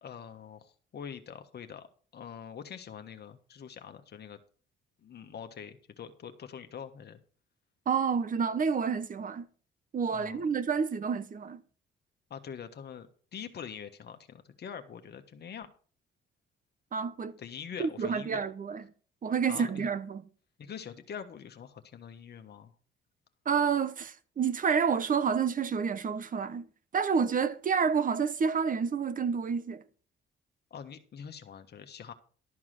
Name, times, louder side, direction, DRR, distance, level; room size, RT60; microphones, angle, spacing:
voice 1, 0.0-1.9 2.1-4.4 5.0-7.2 10.1-10.4 12.3-13.1 13.3-15.7 17.4-18.4 19.5-19.9 20.6-22.7 30.7-32.1, left 7 dB, 55° left, 1.4 m, -44 dB
voice 2, 7.9-9.5 9.9-11.6 16.9-17.4 17.8-18.8 19.2-20.2 23.4-26.7 26.9-29.8, right 6 dB, 45° right, 1.1 m, -29 dB
12.5 x 4.8 x 7.6 m
cardioid pair, 90°, 20 cm